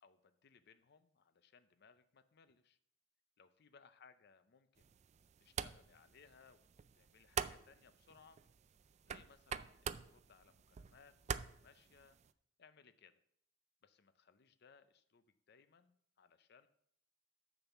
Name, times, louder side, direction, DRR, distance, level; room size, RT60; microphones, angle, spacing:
voice 1, 0.0-2.8 3.4-4.9 5.4-8.4 9.0-12.2 12.6-13.2 13.8-16.7, left 6 dB, 60° left, 11 dB, 0.6 m, -65 dB
sound 1, 4.8-12.3, right 7 dB, 35° right, 0.3 m, -46 dB
6.6 x 6.2 x 7.2 m, 0.67 s
head